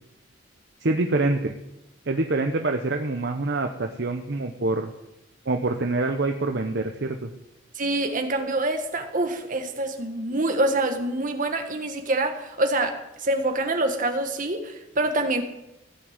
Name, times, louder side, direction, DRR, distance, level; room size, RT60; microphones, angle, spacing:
voice 1, 0.8-1.5 2.1-4.9 5.5-7.3, right 2 dB, 60° right, 4 dB, 0.8 m, -25 dB
voice 2, 7.7-15.4, right 2 dB, 45° right, 5 dB, 1.6 m, -26 dB
16.0 x 6.2 x 8.0 m, 0.91 s
head